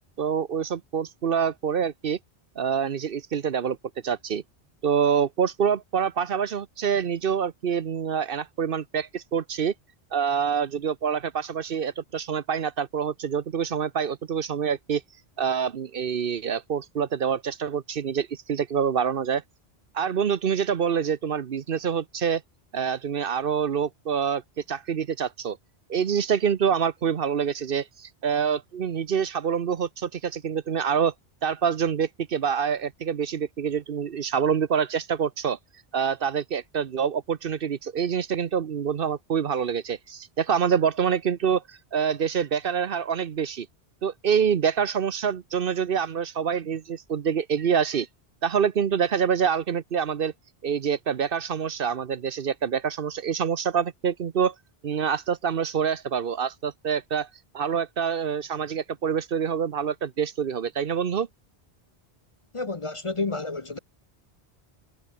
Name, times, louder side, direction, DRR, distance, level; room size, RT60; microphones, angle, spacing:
voice 1, 0.2-2.2 2.6-3.8 4.0-4.4 4.8-9.7 10.1-15.0 15.4-19.4 19.9-22.4 22.7-25.6 25.9-31.1 31.4-35.6 35.9-43.7 44.0-48.1 48.4-50.3 50.6-54.5 54.8-57.3 57.5-61.3, right 7 dB, 60° right, 1.0 m, -26 dB
voice 2, 62.5-63.8, left 3 dB, 30° left, 0.8 m, -30 dB
omnidirectional pair, 1.1 m